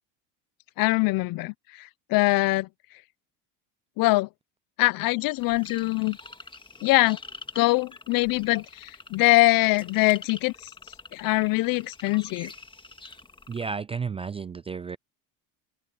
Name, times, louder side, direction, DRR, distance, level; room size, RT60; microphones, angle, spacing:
voice 1, 0.8-2.7 4.0-4.3 4.8-6.2 6.8-7.2 7.5-10.7 11.1-12.5, left 21 dB, 55° left, 0.8 m, -23 dB
sound 1, 5.4-13.7, left 3 dB, 10° left, 2.1 m, -46 dB
voice 2, 13.5-15.0, right 5 dB, 15° right, 0.4 m, -32 dB
open air
supercardioid pair, 105°, 41 cm